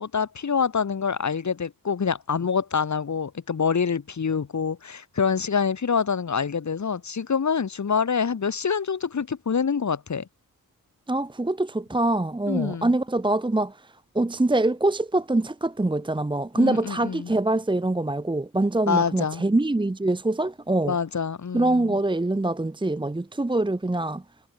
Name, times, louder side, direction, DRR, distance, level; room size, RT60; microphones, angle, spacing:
voice 1, 0.0-10.3 12.5-12.9 16.6-17.3 18.9-19.4 20.8-22.0, left 6 dB, 55° left, 2.4 m, -26 dB
voice 2, 11.1-13.8 14.1-21.0 21.5-24.2, right 2 dB, 15° right, 1.1 m, -24 dB
cardioid pair, 80°, 34 cm